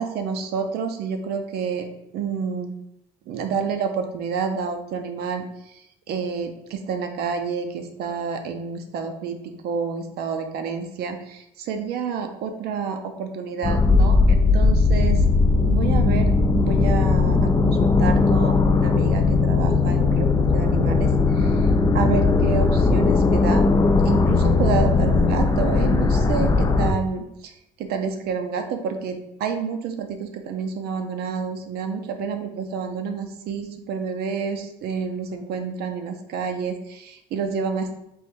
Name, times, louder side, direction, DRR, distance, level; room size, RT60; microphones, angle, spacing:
voice 1, 0.0-1.9 2.1-2.7 3.3-21.7 21.9-23.6 24.0-27.5 27.8-38.0, right 6 dB, 65° right, 6 dB, 0.7 m, -29 dB
sound 1, 13.6-26.9, left 3 dB, 20° left, 0.4 m, -18 dB
3.6 x 2.6 x 4.5 m, 0.81 s
supercardioid pair, 75°, 18 cm